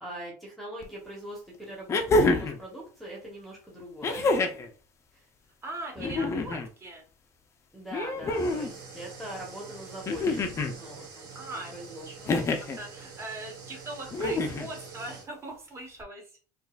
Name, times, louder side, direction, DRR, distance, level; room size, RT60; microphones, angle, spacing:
voice 1, 0.0-4.4 5.9-6.2 7.7-10.5 10.8-11.3 11.7-12.4, right 1 dB, ahead, -2 dB, 0.9 m, -42 dB
sound 1, 0.8-0.9 1.9-2.6 4.0-4.7 6.0-6.7 7.9-8.7 10.1-10.8 12.3-12.8 14.1-14.7 16.0-16.1, left 2 dB, 25° left, 0.5 m, -27 dB
voice 2, 5.6-7.0 11.3-11.7 12.0-16.4, right 2 dB, 25° right, 1 dB, 1.0 m, -41 dB
sound 2, 8.3-15.3, right 5 dB, 85° right, 1.3 m, -46 dB
3.8 x 2.4 x 2.3 m, 0.38 s
cardioid pair, 130°, 10 cm